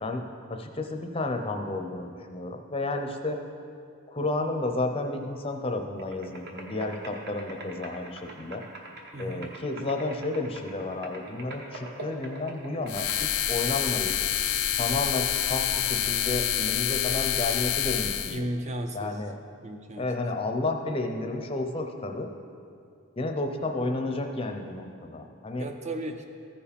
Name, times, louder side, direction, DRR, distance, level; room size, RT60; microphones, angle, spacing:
voice 1, 0.0-3.4 4.1-8.6 9.2-14.1 14.8-18.6 18.9-19.4 20.0-22.3 23.2-25.7, left 2 dB, 25° left, 4 dB, 0.6 m, -31 dB
sound 1, 6.0-13.2, right 1 dB, 50° right, 1.1 m, -44 dB
voice 2, 9.1-9.5 18.3-19.1 19.6-20.1 25.6-26.2, right 1 dB, 30° right, 6 dB, 0.4 m, -34 dB
sound 2, 12.9-18.4, left 11 dB, 70° left, 0.5 m, -27 dB
14.5 x 4.8 x 5.2 m, 2.4 s
head